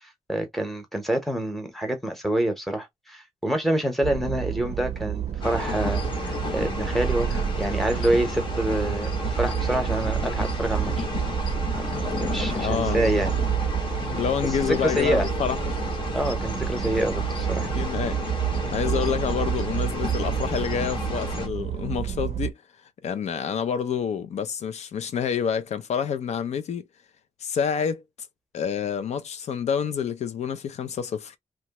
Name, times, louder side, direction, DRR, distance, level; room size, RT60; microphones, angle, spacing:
voice 1, 0.3-10.9 11.8-13.3 14.6-15.3 16.1-17.7, right 1 dB, ahead, 0.8 m, -27 dB
sound 1, 4.0-22.5, right 10 dB, 65° right, 0.4 m, -29 dB
sound 2, 5.4-21.5, left 2 dB, 45° left, 0.8 m, -32 dB
voice 2, 12.5-13.5 14.1-15.6 17.7-18.2 18.7-22.6 23.0-26.8 27.4-28.0 28.5-31.4, left 7 dB, 75° left, 0.4 m, -28 dB
2.9 x 2.3 x 2.9 m
wide cardioid pair, 170°, 12 cm